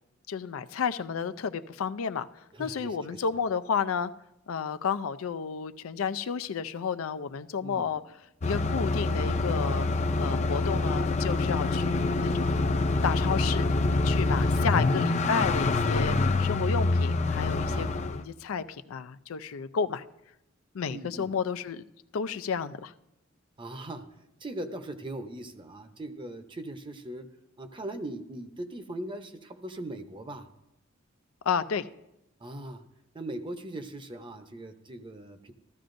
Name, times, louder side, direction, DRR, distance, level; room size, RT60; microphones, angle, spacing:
voice 1, 0.3-2.3 2.6-4.1 4.5-8.0 8.4-9.9 10.2-12.7 13.0-13.7 14.0-20.0 20.7-21.8 22.1-22.9 31.4-31.8, left 6 dB, 90° left, 12 dB, 0.4 m, -31 dB
voice 2, 2.5-3.2 7.6-7.9 14.3-14.5 17.7-18.0 20.9-21.3 23.6-24.1 24.4-27.3 27.6-30.5 32.4-32.8 33.1-35.5, right 1 dB, 25° right, 8 dB, 0.7 m, -40 dB
sound 1, 8.4-18.2, left 3 dB, 35° left, 0.5 m, -26 dB
14.0 x 13.5 x 2.6 m, 0.89 s
head